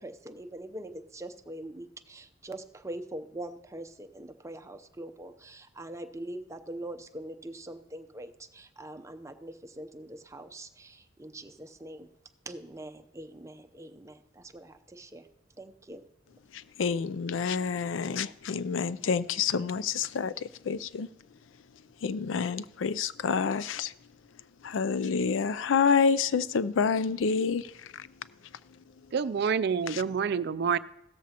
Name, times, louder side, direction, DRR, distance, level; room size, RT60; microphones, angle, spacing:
voice 1, 0.0-12.1 12.5-15.3 15.6-16.0, right 1 dB, 15° right, 0.7 m, -43 dB
voice 2, 16.5-21.1 22.0-23.9 24.6-28.1 29.9-30.0, left 5 dB, 85° left, 0.4 m, -28 dB
voice 3, 29.1-30.8, right 6 dB, 60° right, 0.4 m, -27 dB
16.0 x 13.5 x 2.9 m
head